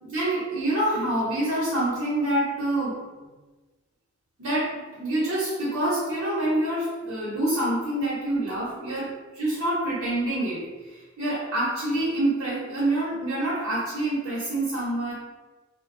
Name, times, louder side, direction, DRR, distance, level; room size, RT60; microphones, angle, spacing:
voice 1, 0.0-2.9 4.4-15.1, right 1 dB, 90° right, -10 dB, 0.8 m, -26 dB
2.6 x 2.2 x 2.5 m, 1.3 s
head